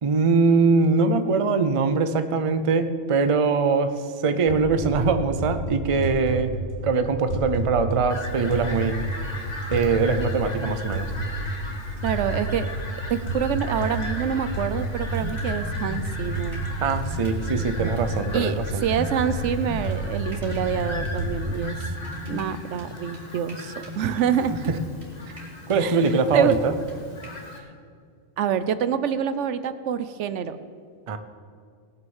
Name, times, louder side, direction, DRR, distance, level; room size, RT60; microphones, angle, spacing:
voice 1, 0.0-3.9 4.2-9.0 9.7-11.1 16.8-18.8 25.7-26.7 31.1-31.2, right 4 dB, 35° right, 10 dB, 0.5 m, -22 dB
sound 1, 4.5-21.3, right 1 dB, 80° left, 2.7 m, -31 dB
Fowl, 8.1-27.6, left 2 dB, 35° left, 1.5 m, -39 dB
voice 2, 12.0-12.7 13.1-16.6 18.3-21.9 22.3-24.6 25.8-26.0 26.3-26.6 28.4-30.6, right 8 dB, 75° right, 13 dB, 0.9 m, -26 dB
sound 2, 15.1-16.7 17.0-18.5 18.9-27.3, equal, 55° right, 3.0 m, -37 dB
18.0 x 6.5 x 7.2 m, 2.2 s
omnidirectional pair, 1.3 m